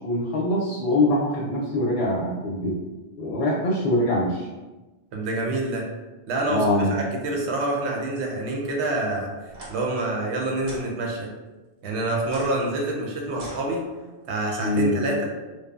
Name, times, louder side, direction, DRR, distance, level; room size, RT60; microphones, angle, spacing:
voice 1, 0.0-2.8 3.2-4.5 6.5-7.0 14.6-15.0, left 1 dB, 75° left, -4 dB, 0.8 m, -23 dB
voice 2, 5.1-5.9 6.3-9.3 9.7-11.3 11.8-13.8 14.3-15.2, right 2 dB, 70° right, -1 dB, 0.9 m, -27 dB
sound 1, 9.5-9.7 10.6-10.9 12.2-14.2, right 1 dB, 40° right, 0.6 m, -42 dB
3.2 x 2.0 x 2.3 m, 1.2 s
omnidirectional pair, 1.2 m